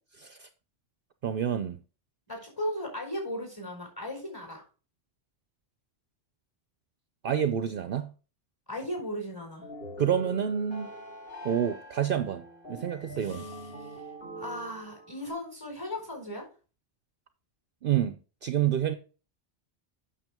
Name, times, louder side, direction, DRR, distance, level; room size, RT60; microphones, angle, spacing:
voice 1, 1.2-1.8 7.2-8.1 10.0-10.9 11.4-13.4 17.8-18.9, right 9 dB, 60° right, 0.8 m, -28 dB
voice 2, 2.3-4.6 8.7-9.7 13.2-14.0 14.4-16.5, left 1 dB, 20° left, 4.6 m, -37 dB
sound 1, 9.6-15.3, right 1 dB, 60° left, 2.6 m, -43 dB
9.0 x 6.6 x 3.6 m
omnidirectional pair, 1.1 m